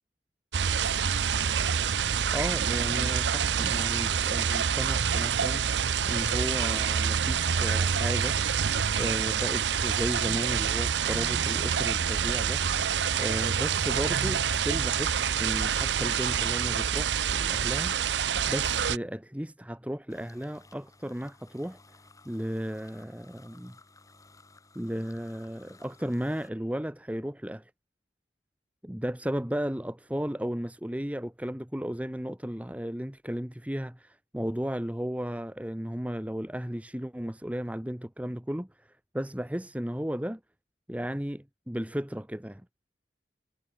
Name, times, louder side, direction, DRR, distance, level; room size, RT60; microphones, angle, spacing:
sound 1, 0.5-19.0, right 7 dB, 85° right, 0.7 m, -27 dB
voice 1, 2.3-5.6 6.1-8.4 8.9-12.6 13.2-18.0 18.5-21.8 22.2-23.7 24.7-27.7 28.8-40.4 40.9-42.6, equal, 10° right, 1.2 m, -34 dB
sound 2, 20.1-26.5, left 3 dB, 20° left, 5.2 m, -57 dB
head